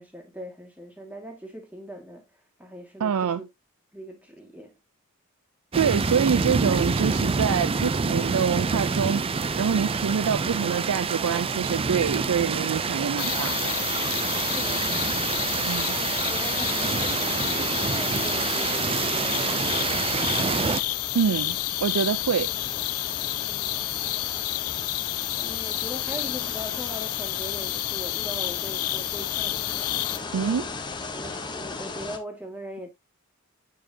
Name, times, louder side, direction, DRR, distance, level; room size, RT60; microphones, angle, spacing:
voice 1, 0.0-2.2 2.6-3.5 3.9-4.8 14.4-15.3 15.9-20.2 23.4-23.8 25.4-29.9 31.1-32.9, equal, 5° right, 1.9 m, -40 dB
voice 2, 3.0-3.4 5.7-13.6 15.6-16.0 21.1-22.5 30.3-30.7, right 7 dB, 90° right, 0.4 m, -26 dB
sound 1, 5.7-20.8, right 4 dB, 25° right, 0.4 m, -27 dB
sound 2, 13.2-30.2, left 15 dB, 90° left, 0.5 m, -30 dB
sound 3, 16.2-32.2, left 3 dB, 20° left, 1.0 m, -39 dB
9.1 x 4.5 x 2.8 m
head